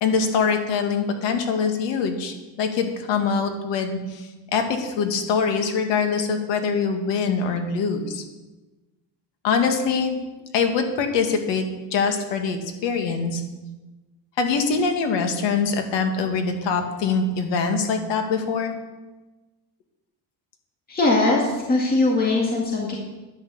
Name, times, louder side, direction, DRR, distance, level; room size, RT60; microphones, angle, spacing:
voice 1, 0.0-8.2 9.4-10.2 10.5-13.4 14.4-18.7, left 5 dB, 85° left, 5 dB, 2.0 m, -24 dB
voice 2, 20.9-22.9, left 2 dB, 20° left, -2 dB, 2.1 m, -21 dB
10.5 x 10.5 x 7.0 m, 1.1 s
cardioid pair, 165°, 42 cm